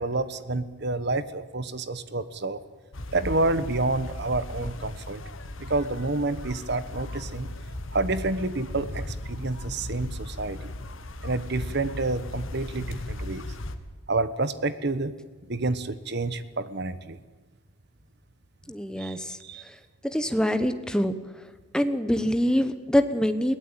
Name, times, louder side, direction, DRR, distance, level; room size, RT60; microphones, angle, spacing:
voice 1, 0.0-2.6 3.1-5.2 5.6-7.5 7.9-10.7 11.2-13.5 14.1-15.1 15.5-17.2 19.0-19.6, right 2 dB, 50° right, 14 dB, 1.2 m, -29 dB
sound 1, 2.9-13.8, left 1 dB, 65° left, 1.5 m, -37 dB
voice 2, 18.7-19.4 20.0-21.1 21.7-23.6, equal, 5° left, 10 dB, 1.1 m, -24 dB
21.5 x 17.5 x 9.0 m, 1.4 s
head